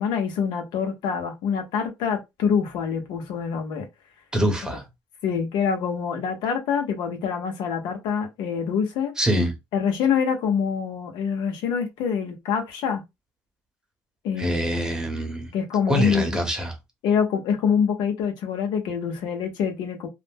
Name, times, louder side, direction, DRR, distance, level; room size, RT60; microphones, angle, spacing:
voice 1, 0.0-3.9 4.6-4.8 5.2-9.1 9.7-13.0 14.2-15.1 15.5-16.4 17.0-20.1, left 7 dB, 80° left, 0.9 m, -25 dB
voice 2, 4.3-4.8 9.2-9.5 14.4-15.5 15.9-16.7, equal, 10° right, 1.0 m, -24 dB
2.5 x 2.0 x 3.5 m
cardioid pair, 110°, 8 cm